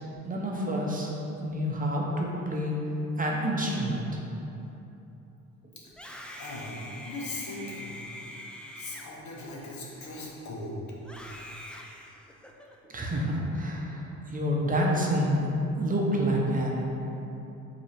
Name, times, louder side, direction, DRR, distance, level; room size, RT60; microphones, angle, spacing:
voice 1, 0.2-1.1 1.4-2.8 3.2-4.2 12.8-16.9, equal, 30° right, -2 dB, 0.7 m, -28 dB
Screaming, 5.9-10.4 11.0-12.7, left 1 dB, 5° left, 0.3 m, -45 dB
voice 2, 6.4-8.0 8.7-10.8, left 2 dB, 70° left, -4 dB, 1.0 m, -39 dB
5.2 x 2.9 x 3.3 m, 3.0 s
cardioid pair, 90°, 30 cm